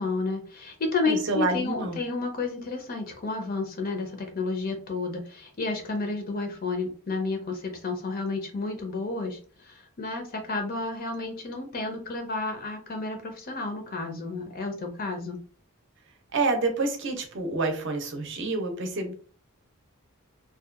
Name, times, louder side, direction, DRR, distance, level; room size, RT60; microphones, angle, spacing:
voice 1, 0.0-15.4, left 3 dB, 40° left, 4 dB, 0.5 m, -31 dB
voice 2, 1.0-2.0 16.3-19.1, right 3 dB, 55° right, 5 dB, 0.6 m, -28 dB
2.7 x 2.2 x 2.4 m, 0.41 s
head